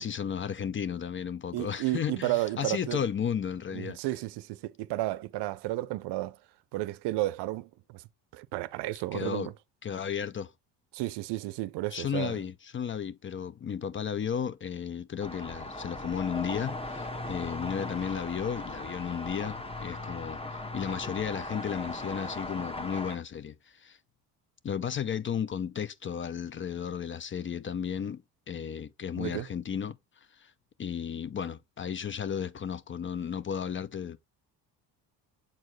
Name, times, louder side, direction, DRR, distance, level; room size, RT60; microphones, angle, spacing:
voice 1, 0.0-4.0 9.1-9.5 9.8-10.5 11.9-24.0 24.6-30.0 30.4-30.5 30.8-34.2, left 8 dB, 30° left, 0.5 m, -34 dB
voice 2, 1.5-3.0 3.7-6.4 6.7-8.0 8.3-9.5 10.9-12.4 29.2-29.5, right 17 dB, 70° right, 0.6 m, -32 dB
sound 1, 15.2-23.2, left 2 dB, 15° left, 1.1 m, -38 dB
7.4 x 4.4 x 3.1 m
supercardioid pair, 80°, 43 cm